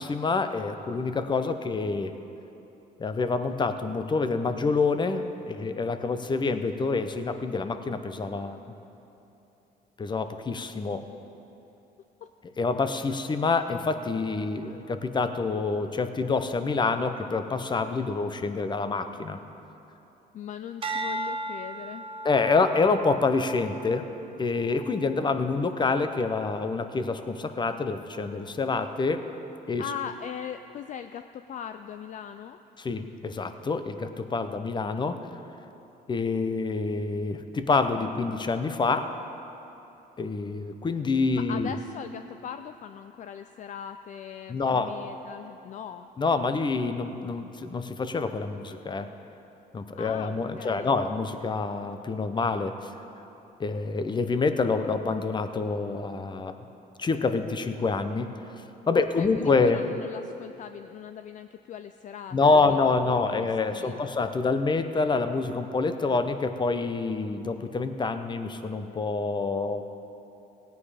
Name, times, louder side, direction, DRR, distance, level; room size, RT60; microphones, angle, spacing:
voice 1, 0.0-2.1 3.0-8.6 10.0-11.0 12.6-19.4 22.2-24.1 24.4-29.2 29.7-29.8 32.8-35.2 36.1-39.1 40.2-41.7 44.5-44.9 46.2-49.1 49.7-52.9 53.6-56.6 57.0-58.3 58.9-59.8 62.3-69.8, left 4 dB, 25° left, 9 dB, 0.8 m, -27 dB
voice 2, 20.3-22.1 29.8-32.6 41.3-46.1 50.0-50.9 58.9-62.8 63.1-64.1, left 8 dB, 45° left, 9 dB, 0.4 m, -40 dB
sound 1, 20.8-25.3 25.8-26.2, right 2 dB, 30° right, 0.8 m, -37 dB
17.0 x 9.4 x 5.0 m, 2.9 s
cardioid pair, 105°, 17 cm